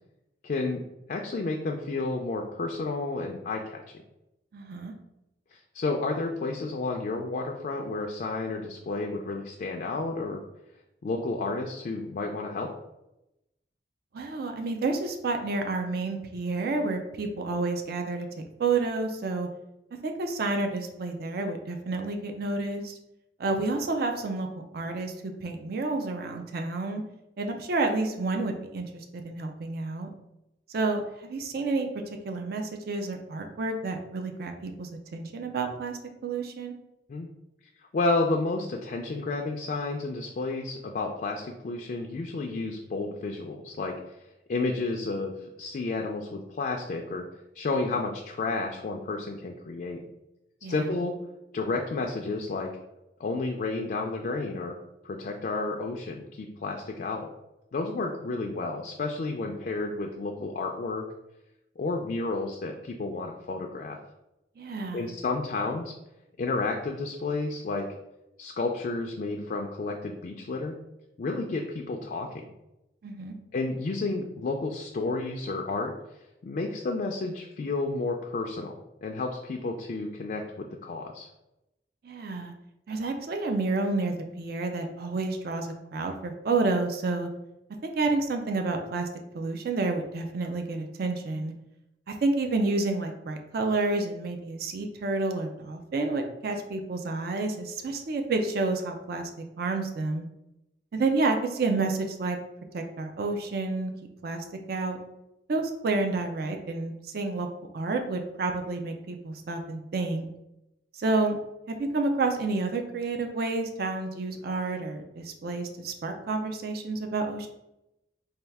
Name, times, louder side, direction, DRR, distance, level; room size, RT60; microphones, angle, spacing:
voice 1, 0.4-0.8 1.1-3.8 5.5-10.4 11.0-12.7 37.1-37.3 37.9-44.1 44.5-47.3 47.5-50.0 50.7-51.1 51.5-52.7 53.2-54.8 55.0-57.3 57.7-61.1 61.8-64.0 64.9-65.9 66.4-67.9 68.4-70.8 71.2-72.5 73.5-75.9 76.4-81.3, left 3 dB, 50° left, 2 dB, 0.3 m, -31 dB
voice 2, 4.5-4.9 14.1-18.3 18.6-19.5 20.0-23.0 23.4-24.5 24.7-27.0 27.4-30.1 30.7-31.9 32.2-36.7 50.6-50.9 64.6-65.1 73.0-73.3 82.0-82.5 82.9-87.3 87.8-89.1 89.3-91.5 92.1-99.3 99.6-100.2 100.9-102.4 102.7-103.9 104.2-105.0 105.5-107.5 107.7-110.2 110.9-111.4 111.7-117.5, right 3 dB, 60° right, 4 dB, 0.4 m, -29 dB
4.3 x 2.3 x 3.4 m, 0.90 s
head